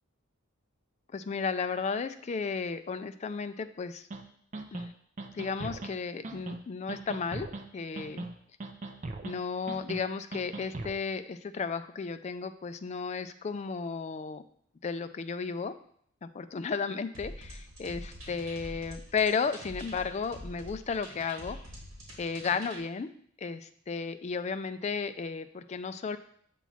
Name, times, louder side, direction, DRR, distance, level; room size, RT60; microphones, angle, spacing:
voice 1, 1.1-4.1 4.7-4.9 5.3-7.5 7.7-8.3 9.2-14.4 14.8-15.7 16.2-21.6 22.2-23.1 23.4-26.2, left 5 dB, 30° left, 10 dB, 0.3 m, -34 dB
sound 1, 4.1-4.2 4.5-4.9 5.2-5.9 6.2-6.6 6.9-7.6 8.0-8.3 8.6-9.4 9.7-10.0 10.3-11.0, right 2 dB, 35° right, 0.5 m, -39 dB
sound 2, 17.1-22.8, equal, 65° right, 1.6 m, -45 dB
7.1 x 3.0 x 5.5 m, 0.64 s
head